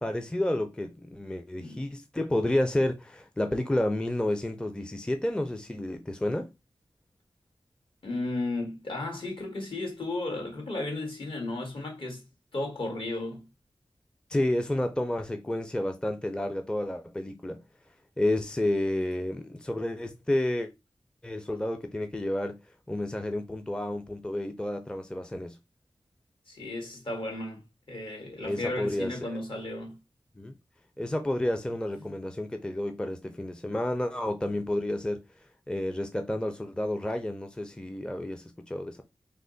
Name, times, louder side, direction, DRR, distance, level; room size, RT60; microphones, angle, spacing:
voice 1, 0.0-6.5 14.3-17.6 18.2-20.7 21.2-22.6 22.9-25.6 28.4-29.4 30.4-30.5 31.0-35.2 35.7-39.0, left 1 dB, 10° left, 0.5 m, -30 dB
voice 2, 8.0-12.2 12.5-13.4 26.5-27.6 27.9-30.0 32.0-32.1, left 2 dB, 65° left, 1.5 m, -34 dB
3.3 x 2.0 x 3.8 m
wide cardioid pair, 65°, 9 cm